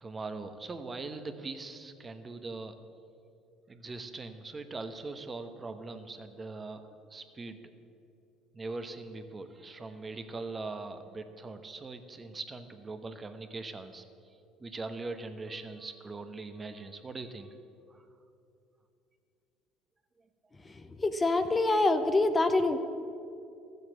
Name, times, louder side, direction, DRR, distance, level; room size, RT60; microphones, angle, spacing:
voice 1, 0.0-2.7 3.7-7.6 8.5-14.0 14.6-17.5 17.9-18.0, right 3 dB, 25° right, 8 dB, 1.1 m, -41 dB
voice 2, 21.0-22.8, left 2 dB, 25° left, 9 dB, 0.8 m, -25 dB
13.5 x 8.1 x 7.5 m, 2.6 s
hypercardioid pair, 75°, 0 cm